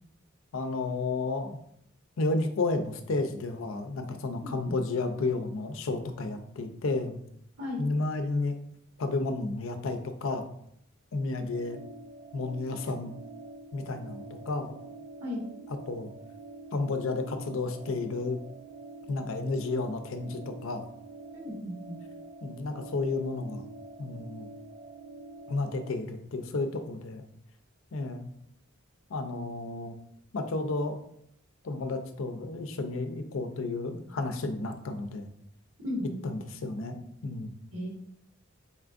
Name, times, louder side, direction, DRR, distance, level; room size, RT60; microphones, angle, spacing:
voice 1, 0.5-1.6 2.2-7.2 7.8-8.6 9.0-10.4 11.1-11.8 12.3-13.1 13.7-14.8 15.7-16.1 16.7-18.4 19.1-20.8 22.4-23.6 24.0-24.5 25.5-27.2 27.9-28.3 29.1-29.9 30.3-31.0 31.6-35.3 36.2-37.0 37.2-37.5, left 3 dB, 70° left, 7 dB, 0.5 m, -32 dB
voice 2, 4.4-4.8 7.6-7.8 15.2-15.4 21.3-22.0 35.8-36.2 37.7-37.9, left 1 dB, 75° right, -3 dB, 1.3 m, -35 dB
sound 1, 11.5-25.9, right 3 dB, 45° right, 0.3 m, -47 dB
4.2 x 3.4 x 2.5 m, 0.70 s
head